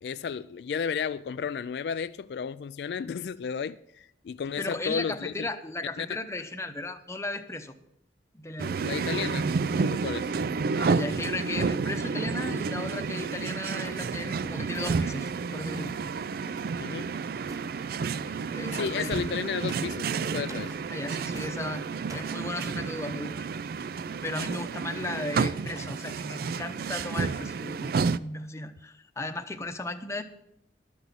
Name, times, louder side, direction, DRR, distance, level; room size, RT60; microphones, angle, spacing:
voice 1, 0.0-5.5 6.0-6.2 8.8-10.3 16.8-17.1 18.7-20.8, left 6 dB, 70° left, 0.3 m, -33 dB
voice 2, 4.6-7.7 8.3-8.7 10.7-15.9 18.5-19.1 20.9-21.8 22.1-23.5 24.2-30.2, left 2 dB, 15° left, 0.8 m, -36 dB
sound 1, 8.6-28.2, right 5 dB, 55° right, 0.4 m, -30 dB
sound 2, 13.8-14.2 14.7-15.2 15.7-16.0 16.6-16.9 17.5-17.7 18.8-19.1 19.7-20.0 20.5-20.8 21.3-21.6 22.1-22.4, right 1 dB, 20° right, 0.8 m, -48 dB
12.0 x 6.1 x 8.2 m
head